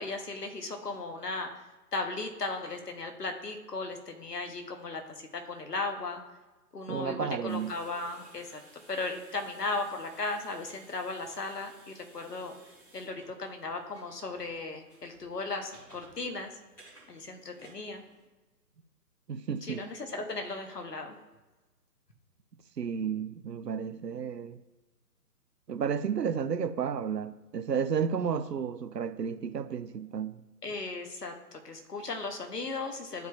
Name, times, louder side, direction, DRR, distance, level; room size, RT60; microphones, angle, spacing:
voice 1, 0.0-1.6 1.9-6.2 6.7-8.6 8.9-12.5 12.9-16.5 17.1-18.0 19.6-21.2 30.6-33.3, left 3 dB, 75° left, 1.2 m, -36 dB
voice 2, 6.9-7.7 19.3-19.8 22.8-24.6 25.7-30.4, right 7 dB, 80° right, 0.6 m, -32 dB
sound 1, 7.5-18.2, right 1 dB, 5° left, 1.3 m, -57 dB
11.5 x 4.7 x 2.4 m
figure-of-eight pair, 140°, 48 cm